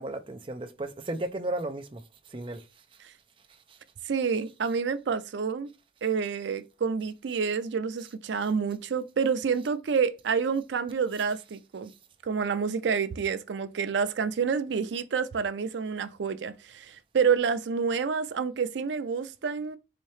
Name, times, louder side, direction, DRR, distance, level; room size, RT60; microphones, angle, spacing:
voice 1, 0.0-2.6 3.7-3.8 4.6-4.7 8.0-8.1, right 1 dB, 30° right, 0.5 m, -35 dB
voice 2, 4.0-5.7 6.0-11.9 12.2-19.8, right 6 dB, 85° right, 0.4 m, -28 dB
4.2 x 2.7 x 3.1 m
head